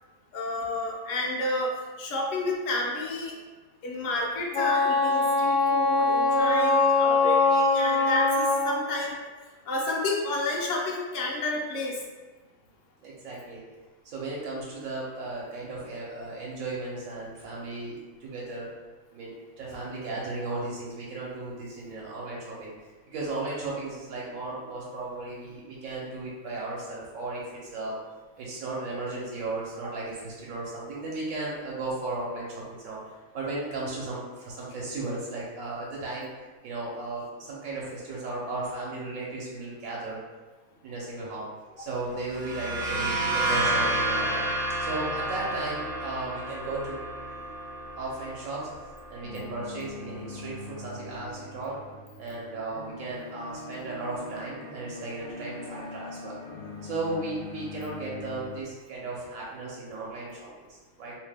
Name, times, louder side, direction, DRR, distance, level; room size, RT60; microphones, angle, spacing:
voice 1, 0.3-3.3 3.8-9.2 9.7-12.0, left 2 dB, 70° left, -3 dB, 0.9 m, -30 dB
Wind instrument woodwind instrument, 4.5-8.8, left 3 dB, 55° left, 0.6 m, -22 dB
voice 2, 13.0-13.6 14.0-18.7 19.1-22.7 23.1-28.0 28.4-36.3 36.6-40.2 40.8-41.5 41.8-44.5 44.8-47.5 48.0-48.7 49.1-51.8 52.2-56.4 56.8-61.1, right 2 dB, 80° right, -5 dB, 1.0 m, -35 dB
sound 1, 42.2-49.8, right 2 dB, 60° right, 0.3 m, -30 dB
sound 2, 49.2-58.6, left 2 dB, 85° left, 1.1 m, -42 dB
2.8 x 2.1 x 3.3 m, 1.3 s
omnidirectional pair, 1.4 m